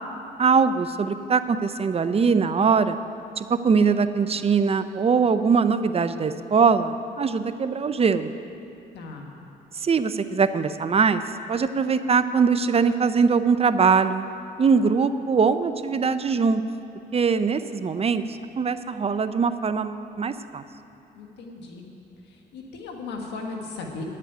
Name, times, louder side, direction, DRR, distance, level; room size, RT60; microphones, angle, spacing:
voice 1, 0.4-3.0 3.4-8.3 9.8-11.2 11.5-14.3 14.6-16.6 17.1-18.2 18.6-20.6, right 5 dB, 35° right, 11 dB, 0.5 m, -22 dB
voice 2, 8.9-9.3 21.2-21.8 22.3-24.0, left 3 dB, 90° left, 1 dB, 1.6 m, -37 dB
9.5 x 7.5 x 9.2 m, 2.7 s
cardioid pair, 75°, 17 cm